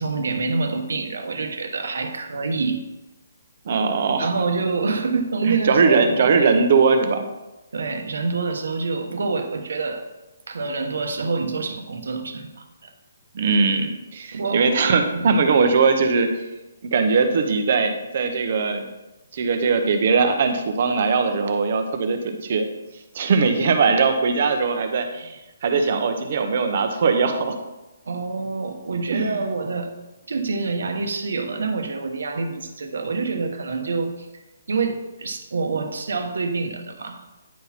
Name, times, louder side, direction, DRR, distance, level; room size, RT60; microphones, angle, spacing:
voice 1, 0.0-2.8 4.2-6.5 7.7-10.1 10.5-12.9 14.3-14.7 15.1-15.4 28.0-29.9 30.3-34.4 34.7-37.2, right 4 dB, 75° right, 6 dB, 1.0 m, -26 dB
voice 2, 3.6-4.3 5.4-7.2 13.3-16.3 16.8-18.9 19.3-22.7 23.1-27.6 29.1-29.3, right 4 dB, 40° right, 6 dB, 0.8 m, -20 dB
9.5 x 4.1 x 4.4 m, 1.0 s
hypercardioid pair, 175°, 0 cm